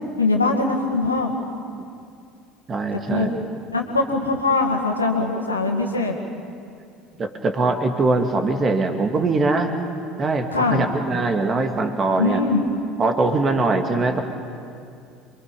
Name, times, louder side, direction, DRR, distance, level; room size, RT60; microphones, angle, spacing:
voice 1, 0.2-1.3 3.1-3.3 3.7-6.2 10.5-10.9 12.2-12.6, left 3 dB, 85° left, 2 dB, 2.0 m, -22 dB
voice 2, 2.7-3.4 7.2-9.7 10.2-12.4 13.0-14.2, right 3 dB, 30° right, 6 dB, 2.2 m, -22 dB
27.5 x 23.0 x 5.4 m, 2.4 s
figure-of-eight pair, 65°, 0 cm